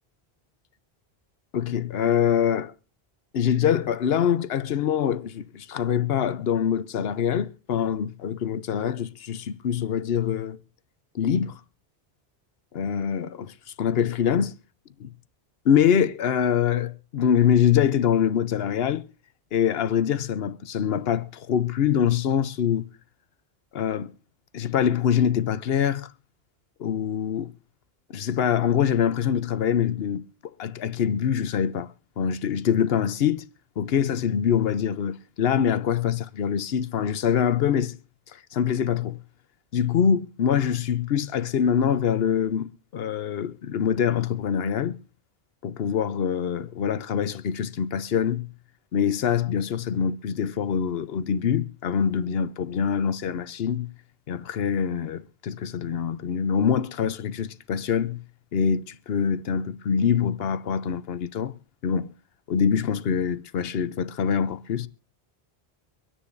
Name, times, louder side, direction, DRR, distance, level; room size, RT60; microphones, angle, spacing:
voice 1, 1.5-2.7 3.3-10.6 11.1-11.6 12.7-14.6 15.0-15.1 15.6-19.0 19.5-22.8 23.7-24.1 24.5-26.1 26.8-27.5 28.1-30.2 30.6-33.4 33.8-38.0 38.5-39.2 39.7-45.0 45.6-48.5 48.9-53.9 54.3-58.2 58.5-61.5 61.8-62.1 62.5-64.9, left 8 dB, 75° left, 1.0 m, -24 dB
24.5 x 10.0 x 2.6 m
omnidirectional pair, 1.0 m